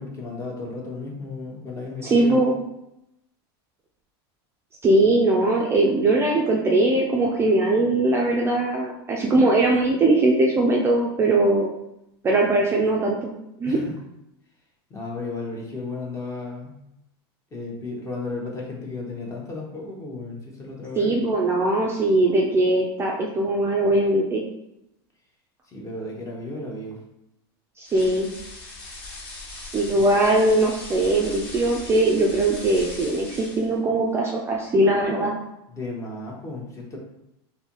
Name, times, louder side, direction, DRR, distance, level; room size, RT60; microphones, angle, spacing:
voice 1, 0.0-2.5 13.6-14.0 14.9-16.8 17.5-21.1 25.7-27.0 30.0-30.1 35.7-37.0, left 2 dB, 20° left, -1 dB, 0.8 m, -34 dB
voice 2, 2.0-2.6 4.8-11.7 12.2-13.3 13.6-13.8 21.0-24.4 27.8-28.3 29.7-35.4, right 2 dB, 20° right, -1 dB, 0.4 m, -20 dB
sound 1, 27.9-33.8, left 2 dB, 65° left, 1.3 m, -39 dB
3.2 x 2.6 x 2.9 m, 0.85 s
supercardioid pair, 130°, 13 cm